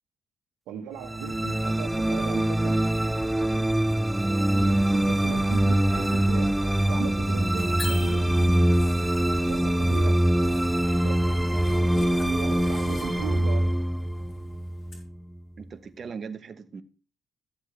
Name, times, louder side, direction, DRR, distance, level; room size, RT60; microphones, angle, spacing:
voice 1, 0.7-3.1 4.5-8.7 9.4-10.2 10.9-11.2 11.9-13.8, right 8 dB, 90° right, 1.4 m, -38 dB
sound 1, 1.0-15.4, right 1 dB, 5° right, 0.5 m, -24 dB
Zipper (clothing), 2.8-15.0, left 3 dB, 50° left, 3.6 m, -51 dB
sound 2, 7.8-8.9, left 3 dB, 30° left, 0.9 m, -38 dB
voice 2, 15.6-16.8, right 5 dB, 45° right, 1.1 m, -39 dB
13.5 x 7.2 x 3.3 m
cardioid pair, 90°, 0 cm